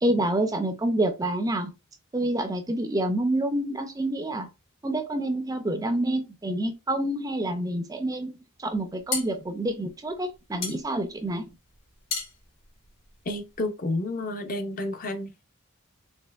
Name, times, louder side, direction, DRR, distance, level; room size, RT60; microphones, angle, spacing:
voice 1, 0.0-1.7 2.1-4.5 4.8-8.3 8.6-11.5, right 1 dB, 15° right, 0.4 m, -27 dB
sound 1, 8.7-13.7, left 5 dB, 60° left, 2.0 m, -36 dB
voice 2, 13.3-15.4, left 2 dB, 40° left, 0.6 m, -30 dB
4.3 x 2.8 x 2.3 m
head